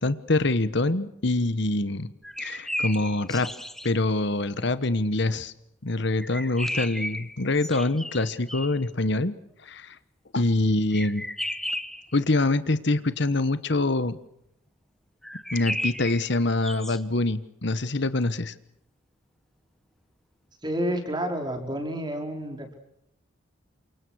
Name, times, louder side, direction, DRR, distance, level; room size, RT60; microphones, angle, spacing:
voice 1, 0.0-2.1 2.4-3.5 3.8-5.5 5.8-9.3 9.6-10.0 10.3-11.3 12.1-14.2 15.5-18.5, left 2 dB, 55° left, 13 dB, 1.2 m, -25 dB
sound 1, 2.2-3.9 6.2-8.8 10.9-12.1 15.2-17.0, left 1 dB, ahead, 1.1 m, -34 dB
voice 2, 20.6-22.8, equal, 20° right, 4 dB, 4.6 m, -30 dB
29.0 x 26.0 x 6.3 m, 0.78 s
head